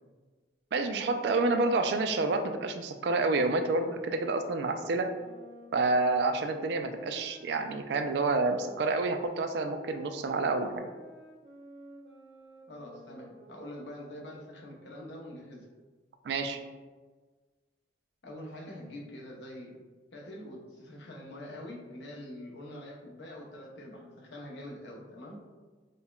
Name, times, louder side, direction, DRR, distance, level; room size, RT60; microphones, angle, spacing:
voice 1, 0.7-5.1 5.7-10.8 16.2-16.6, right 3 dB, 65° right, 7 dB, 0.3 m, -28 dB
sound 1, 4.5-9.1 9.6-14.6, right 2 dB, 90° right, 1.3 m, -52 dB
voice 2, 12.7-15.7 18.2-19.8 20.1-25.4, left 1 dB, 75° left, -2 dB, 0.7 m, -45 dB
5.2 x 2.1 x 2.3 m, 1.3 s
head